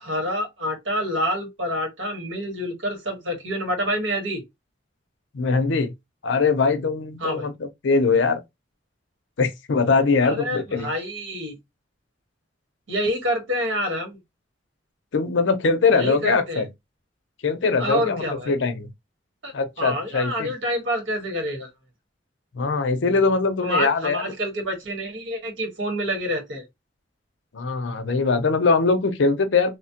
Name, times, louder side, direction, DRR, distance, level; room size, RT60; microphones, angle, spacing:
voice 1, 0.0-4.4 7.2-7.5 10.2-11.6 12.9-14.2 15.9-16.6 17.8-18.5 19.4-21.7 23.6-26.6, equal, 85° right, 1.4 m, -27 dB
voice 2, 5.3-5.9 6.2-8.4 9.4-10.9 15.1-16.7 17.4-18.9 19.5-20.5 22.5-24.3 27.5-29.8, left 4 dB, 75° left, 0.5 m, -22 dB
3.1 x 2.1 x 2.7 m
head